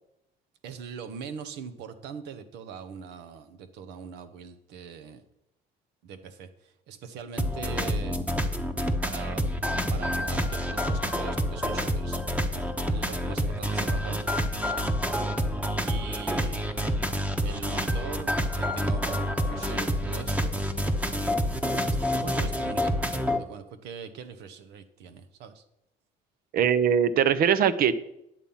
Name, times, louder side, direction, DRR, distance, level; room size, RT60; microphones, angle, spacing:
voice 1, 0.6-5.2 6.0-8.3 9.0-9.6 9.9-12.2 12.5-14.2 15.8-16.9 17.4-20.6 21.7-25.6, right 6 dB, 85° right, 10 dB, 1.1 m, -41 dB
sound 1, 7.4-23.4, equal, 10° right, 1.0 m, -28 dB
voice 2, 26.5-27.9, right 8 dB, 60° right, 15 dB, 0.8 m, -21 dB
10.0 x 7.3 x 5.6 m, 0.82 s
cardioid pair, 110°, 17 cm